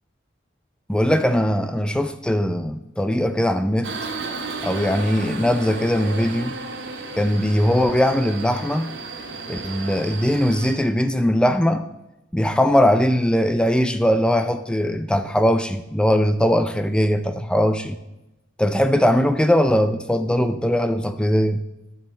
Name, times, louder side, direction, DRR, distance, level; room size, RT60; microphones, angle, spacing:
voice 1, 0.9-3.9 4.6-6.6 7.1-8.9 9.5-11.9 12.3-18.0 18.6-21.6, equal, 5° left, 0.4 m, -20 dB
Subway metro underground, 3.8-10.7, right 3 dB, 75° right, 1.7 m, -33 dB
10.5 x 5.4 x 7.9 m
head